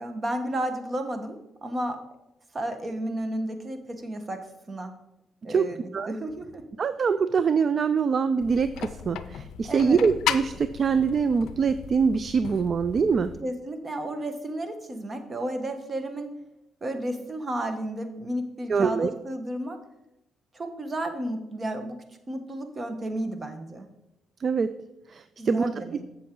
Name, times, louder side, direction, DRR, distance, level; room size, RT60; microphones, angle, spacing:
voice 1, 0.0-2.0 2.5-4.9 5.4-6.6 9.7-10.0 13.4-16.3 16.8-19.8 20.5-23.9 25.4-26.0, right 1 dB, 30° right, 7 dB, 1.2 m, -32 dB
voice 2, 5.5-6.1 6.8-13.3 18.7-19.1 24.4-24.7 25.1-25.7, right 5 dB, 45° right, 13 dB, 0.3 m, -24 dB
sound 1, 8.4-13.4, left 9 dB, 80° left, 0.4 m, -35 dB
7.5 x 7.2 x 3.8 m, 0.90 s
cardioid pair, 90°, 0 cm